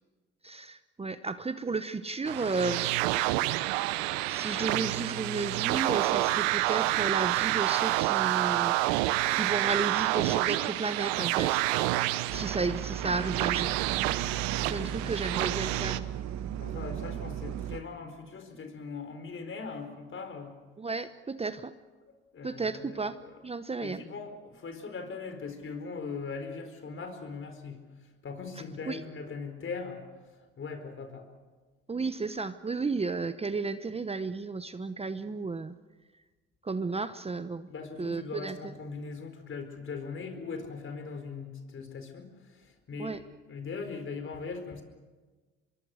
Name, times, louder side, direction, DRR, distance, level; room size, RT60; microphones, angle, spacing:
voice 1, 0.4-3.3 4.3-8.8 9.3-11.6 12.3-13.8 14.7-16.1 20.8-21.7 22.4-23.2 23.4-24.0 28.9-29.0 31.9-35.8 36.6-37.7 38.0-38.7 43.0-43.2, right 4 dB, 20° right, 12 dB, 0.9 m, -33 dB
sound 1, 2.2-16.0, right 17 dB, 85° right, 0.9 m, -28 dB
sound 2, 12.3-17.8, right 10 dB, 60° right, 1.4 m, -36 dB
voice 2, 14.6-15.2 16.6-20.6 22.1-23.3 23.8-27.9 28.2-30.0 30.6-31.3 37.7-43.2 43.5-44.8, left 4 dB, 40° left, 7 dB, 4.6 m, -40 dB
25.0 x 22.5 x 6.5 m, 1.3 s
supercardioid pair, 65°, 30 cm